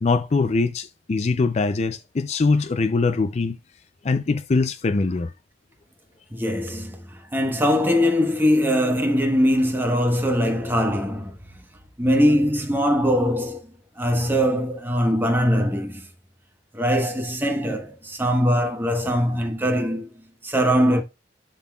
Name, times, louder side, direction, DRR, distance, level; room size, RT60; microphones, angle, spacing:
voice 1, 0.0-3.6 4.0-5.3, left 3 dB, 35° left, 0.4 m, -22 dB
voice 2, 6.3-11.4 12.0-16.0 16.7-21.0, equal, 10° right, 1.0 m, -22 dB
11.0 x 3.8 x 2.3 m
head